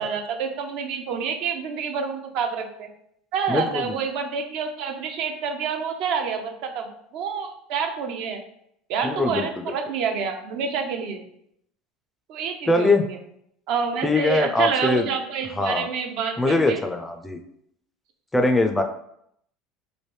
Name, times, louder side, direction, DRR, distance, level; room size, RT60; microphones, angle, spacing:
voice 1, 0.0-2.9 3.3-8.4 8.9-11.2 12.3-13.2 13.7-16.8, right 6 dB, 65° right, 4 dB, 0.5 m, -28 dB
voice 2, 3.5-4.0 9.0-9.7 12.7-13.0 14.0-15.1 15.6-15.9 16.4-17.4 18.3-18.8, left 2 dB, 10° left, 5 dB, 0.3 m, -22 dB
3.2 x 2.5 x 3.1 m, 0.73 s
supercardioid pair, 115°, 0 cm